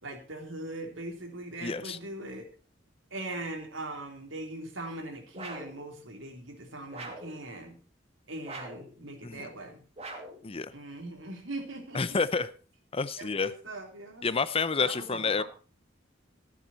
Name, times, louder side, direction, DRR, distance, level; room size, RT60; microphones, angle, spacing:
voice 1, 0.0-2.5 3.1-7.8 8.3-9.8 10.7-12.2 13.2-14.3 14.8-15.4, right 2 dB, 90° right, 4 dB, 3.5 m, -40 dB
voice 2, 1.6-2.0 9.2-9.5 10.4-10.7 11.9-12.5 12.9-13.5 14.2-15.4, left 4 dB, 30° left, 15 dB, 0.6 m, -29 dB
sound 1, 5.3-5.8 6.9-7.4 8.4-8.9 10.0-10.4, right 2 dB, 35° right, 2.5 m, -42 dB
14.5 x 11.0 x 4.3 m, 0.37 s
head